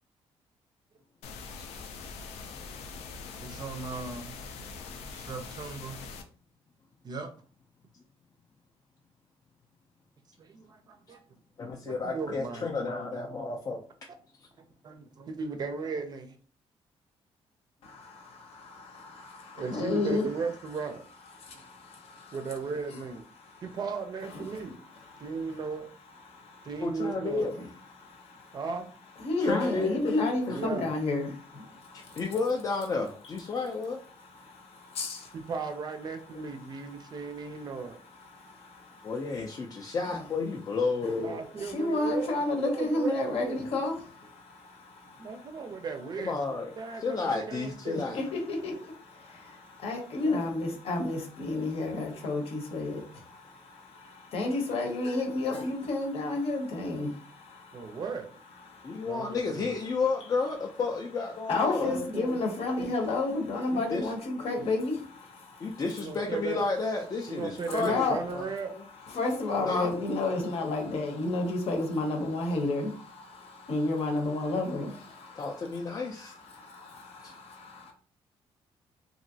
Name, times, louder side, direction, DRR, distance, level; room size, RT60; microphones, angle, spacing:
sound 1, 1.2-6.2, left 4 dB, 90° left, 0.5 m, -43 dB
voice 1, 3.4-4.3 5.1-6.0 7.0-7.3 10.4-11.2 11.8-12.9 14.6-16.4 19.6-21.1 21.5-21.6 22.3-23.2 23.6-24.8 25.2-25.9 26.6-27.5 28.5-28.9 30.5-30.9 35.3-38.0 41.2-43.7 45.2-46.4 46.8-48.2 50.2-50.4 57.7-58.3 59.0-59.7 61.8-62.4 66.0-66.6 67.3-68.7, right 5 dB, 40° right, 0.5 m, -36 dB
voice 2, 11.6-13.8 26.8-27.5 29.4-30.0 30.5-30.6 31.9-34.0 39.0-41.4 41.8-42.0 46.3-46.7 47.0-48.2 58.8-61.9 62.8-62.9 63.7-64.1 65.6-68.4 68.7-68.8 69.6-69.9 75.4-76.3 77.2-77.3, left 4 dB, 30° left, 0.4 m, -31 dB
voice 3, 17.8-20.3 21.4-22.4 23.4-23.8 24.3-24.6 25.0-25.6 26.3-26.7 27.6-27.7 27.9-28.6 29.2-32.2 34.1-35.4 36.9-39.2 39.7-40.2 41.0-41.1 41.6-45.5 47.9-58.0 58.7-59.1 61.5-65.8 67.8-68.2 69.0-77.9, left 2 dB, 70° left, 0.8 m, -32 dB
3.0 x 2.5 x 2.7 m
cardioid pair, 145°, 11 cm